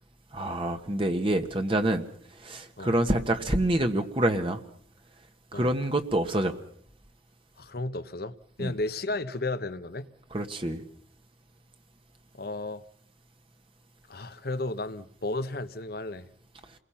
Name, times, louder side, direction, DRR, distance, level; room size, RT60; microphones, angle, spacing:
voice 1, 0.3-2.0 2.4-4.6 5.5-6.5 8.6-8.7 10.3-10.8, right 1 dB, 30° right, 1.4 m, -26 dB
voice 2, 7.6-10.1 12.3-12.8 14.1-16.3, left 2 dB, 55° left, 1.1 m, -33 dB
29.0 x 21.5 x 5.8 m
head